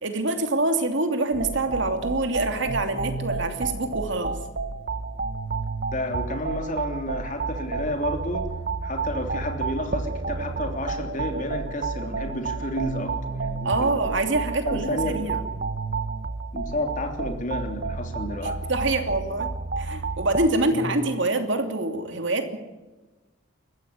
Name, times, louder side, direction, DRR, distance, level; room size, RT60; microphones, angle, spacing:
voice 1, 0.0-4.4 13.6-15.4 18.7-19.5 19.8-22.6, right 2 dB, 65° right, 6 dB, 2.8 m, -25 dB
sound 1, 1.3-20.5, right 4 dB, 45° right, 0.8 m, -31 dB
voice 2, 5.9-8.5 8.8-13.9 14.6-15.3 16.5-18.6 20.7-20.9, left 1 dB, 40° left, 5 dB, 3.3 m, -31 dB
21.5 x 15.5 x 8.5 m, 1.1 s
head